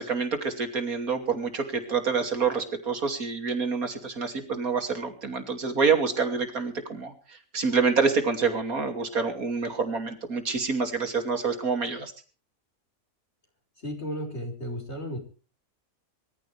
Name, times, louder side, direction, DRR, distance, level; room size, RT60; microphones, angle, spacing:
voice 1, 0.0-7.1 7.5-12.1, right 5 dB, 75° right, 6 dB, 3.2 m, -27 dB
voice 2, 13.8-15.2, equal, 45° left, 3 dB, 5.6 m, -34 dB
23.5 x 14.5 x 3.4 m, 0.37 s
omnidirectional pair, 1.5 m